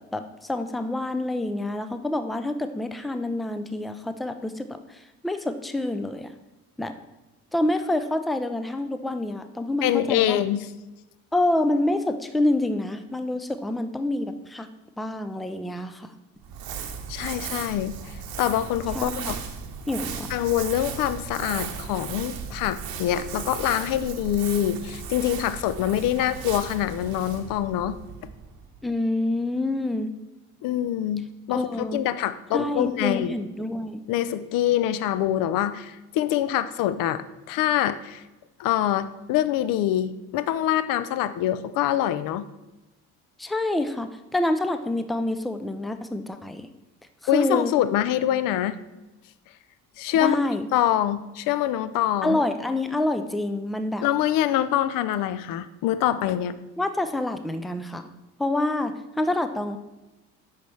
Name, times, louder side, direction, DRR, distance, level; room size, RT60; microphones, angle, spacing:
voice 1, 0.0-6.3 6.8-6.9 7.5-10.4 11.3-14.7 15.0-16.1 18.9-19.3 19.9-20.3 28.8-30.1 31.5-32.0 32.5-34.0 43.4-46.7 47.3-47.7 50.2-50.7 52.2-54.0 56.8-58.1 58.4-59.8, left 1 dB, ahead, 9 dB, 0.3 m, -27 dB
voice 2, 9.8-10.7 17.1-18.0 18.4-19.4 20.3-28.0 30.6-33.4 34.1-38.2 38.6-42.4 47.3-48.8 50.0-50.4 50.7-52.4 54.0-56.6, left 12 dB, 50° left, 14 dB, 0.5 m, -25 dB
Crumpling crinkling, 16.4-28.9, right 6 dB, 55° right, 0.9 m, -36 dB
8.0 x 5.7 x 3.2 m, 1.0 s
figure-of-eight pair, 50°, 44 cm